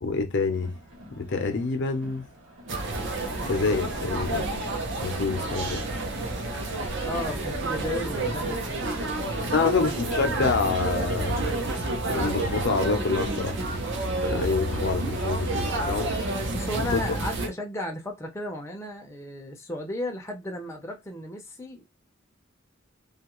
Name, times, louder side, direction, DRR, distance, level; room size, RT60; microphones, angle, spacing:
voice 1, 0.0-0.7 1.2-2.2 3.4-4.5 5.0-5.8 9.5-11.5 12.1-13.6 14.3-16.1 16.9-17.0, left 4 dB, 60° left, 0.6 m, -27 dB
Crowd, 0.5-14.1, equal, 85° right, 0.9 m, -50 dB
sound 1, 2.7-17.5, right 2 dB, 60° right, 0.7 m, -29 dB
voice 2, 7.0-9.7 16.5-21.9, left 1 dB, 15° left, 0.5 m, -35 dB
2.7 x 2.3 x 3.0 m
head